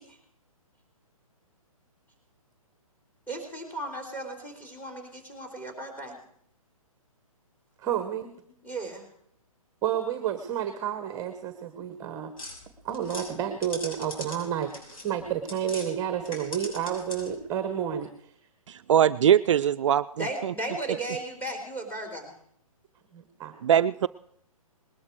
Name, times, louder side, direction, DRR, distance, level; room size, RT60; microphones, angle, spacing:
voice 1, 3.3-6.2 8.6-9.1 20.2-22.3, right 2 dB, 10° left, 2 dB, 3.8 m, -35 dB
voice 2, 7.8-8.3 9.8-12.3 12.8-18.3 23.1-23.6, right 9 dB, 20° right, 9 dB, 1.2 m, -31 dB
sound 1, 12.4-15.9 16.2-17.4, left 2 dB, 65° left, 6.7 m, -41 dB
voice 3, 18.7-20.5 23.6-24.1, right 9 dB, 55° right, 11 dB, 0.5 m, -22 dB
20.0 x 12.5 x 4.7 m, 0.68 s
hypercardioid pair, 140°, 19 cm